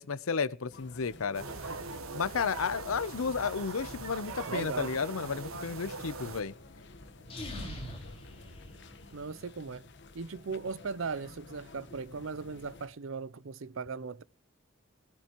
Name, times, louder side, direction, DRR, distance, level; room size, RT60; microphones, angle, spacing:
voice 1, 0.0-1.4 2.1-6.5, left 5 dB, 85° left, 0.7 m, -32 dB
sound 1, 0.7-12.9, left 2 dB, 55° left, 1.3 m, -52 dB
sound 2, 1.3-6.4, right 3 dB, 90° right, 1.6 m, -41 dB
voice 2, 4.5-4.9 9.1-9.8 10.1-14.2, right 4 dB, 70° right, 0.6 m, -38 dB
sound 3, 7.2-9.3, left 1 dB, 30° left, 5.3 m, -43 dB
19.0 x 13.5 x 3.0 m
head